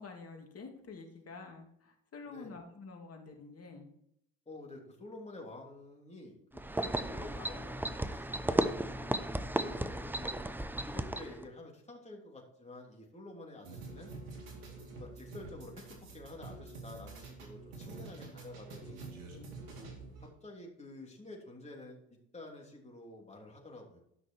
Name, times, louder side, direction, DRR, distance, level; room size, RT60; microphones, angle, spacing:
voice 1, 0.0-3.9 9.0-9.2 19.3-19.5, left 4 dB, 35° left, 3 dB, 2.4 m, -49 dB
voice 2, 4.4-8.7 9.5-10.6 10.8-14.1 14.9-15.8 16.1-19.0 20.2-22.0 22.3-24.0, left 2 dB, 15° left, -1 dB, 3.2 m, -49 dB
sound 1, 6.6-11.4, right 1 dB, 5° right, 0.7 m, -34 dB
sound 2, 13.6-20.3, right 3 dB, 90° right, 2.4 m, -47 dB
11.5 x 6.1 x 4.6 m, 0.73 s
hypercardioid pair, 70°, 39 cm